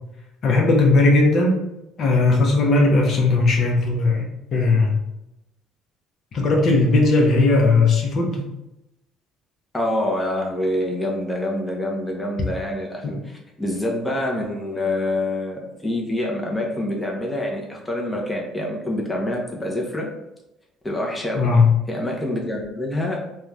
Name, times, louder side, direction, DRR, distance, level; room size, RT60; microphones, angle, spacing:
voice 1, 0.4-1.6 2.0-5.0 6.3-8.5 13.0-13.1 21.3-21.7, left 3 dB, 50° left, 0 dB, 0.6 m, -17 dB
voice 2, 9.7-20.1 20.8-21.5 21.9-23.2, left 1 dB, 10° left, -1 dB, 0.6 m, -26 dB
2.5 x 2.2 x 3.2 m, 0.89 s
cardioid pair, 105°, 0 cm